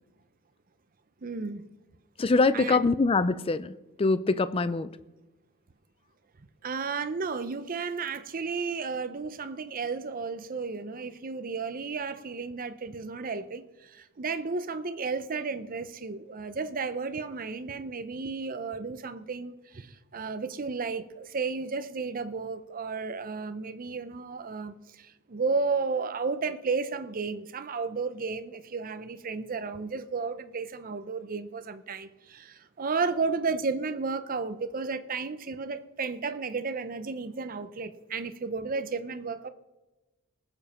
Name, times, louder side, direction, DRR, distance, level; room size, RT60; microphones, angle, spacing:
voice 1, 1.2-1.7 2.5-2.9 6.6-39.5, right 4 dB, 40° right, 0.6 m, -33 dB
voice 2, 2.2-3.7 4.0-4.9, left 3 dB, 25° left, 0.4 m, -24 dB
19.0 x 7.2 x 4.3 m
head